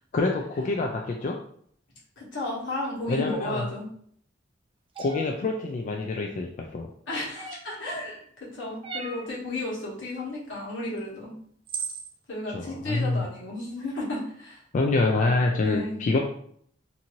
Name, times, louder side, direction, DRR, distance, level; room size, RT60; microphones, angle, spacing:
voice 1, 0.1-1.4 3.1-3.7 5.0-6.9 12.5-13.3 14.7-16.2, left 3 dB, 40° left, 1 dB, 0.3 m, -26 dB
voice 2, 2.2-3.8 7.1-11.3 12.3-14.6 15.6-16.0, left 2 dB, 80° left, -5 dB, 1.2 m, -33 dB
sound 1, 4.9-5.3 7.3-7.8 8.8-9.3 11.0-11.1 11.7-12.1, right 4 dB, 30° right, 0.4 m, -35 dB
2.7 x 2.6 x 2.9 m, 0.62 s
head